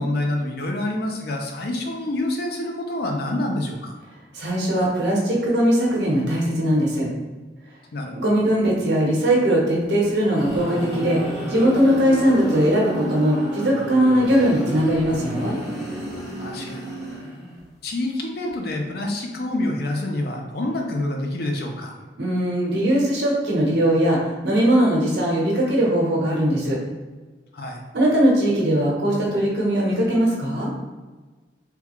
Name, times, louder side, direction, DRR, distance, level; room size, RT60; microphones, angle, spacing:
voice 1, 0.0-3.9 7.9-8.2 16.4-16.8 17.8-22.0 27.5-27.8, left 1 dB, 60° left, 2 dB, 0.5 m, -27 dB
voice 2, 4.3-7.1 8.1-11.2 11.5-15.6 22.2-26.8 27.9-30.7, right 1 dB, 75° right, -3 dB, 0.9 m, -20 dB
sound 1, 10.0-17.7, right 1 dB, ahead, 0.9 m, -31 dB
3.5 x 2.3 x 3.0 m, 1.3 s
head